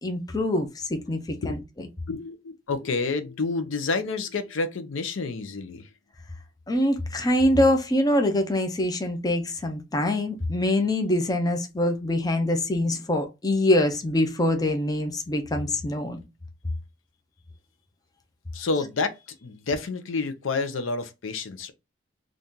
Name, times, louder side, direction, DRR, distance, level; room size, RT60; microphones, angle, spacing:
voice 1, 0.0-1.9 6.7-16.2, left 1 dB, 20° left, 0.5 m, -24 dB
voice 2, 2.1-5.9 18.5-21.7, left 3 dB, 80° left, 0.6 m, -29 dB
2.7 x 2.5 x 3.5 m
head